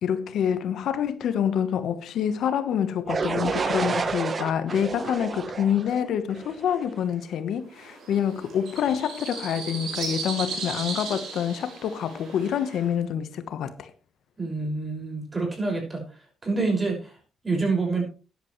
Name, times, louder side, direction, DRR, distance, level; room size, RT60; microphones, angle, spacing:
voice 1, 0.0-13.9, left 8 dB, 75° left, 1.1 m, -27 dB
sound 1, 3.1-7.0, right 5 dB, 40° right, 1.1 m, -30 dB
sound 2, 7.7-12.9, right 4 dB, 75° right, 5.9 m, -36 dB
voice 2, 14.4-16.0 16.4-17.2 17.4-18.0, right 3 dB, 25° right, 5.9 m, -27 dB
14.0 x 10.5 x 3.2 m
cardioid pair, 90°, 0 cm